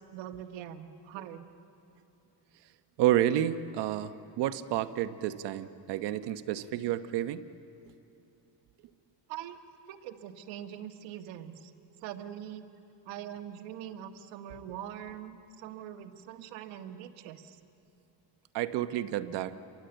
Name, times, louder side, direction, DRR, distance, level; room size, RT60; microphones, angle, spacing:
voice 1, 0.0-1.5 9.3-9.6 9.9-11.7 12.0-12.6 13.1-17.6, right 10 dB, 90° right, 7 dB, 1.6 m, -43 dB
voice 2, 3.0-7.5 18.5-19.6, right 12 dB, 65° right, 11 dB, 1.0 m, -30 dB
29.0 x 23.5 x 8.0 m, 2.7 s
cardioid pair, 180°, 45 cm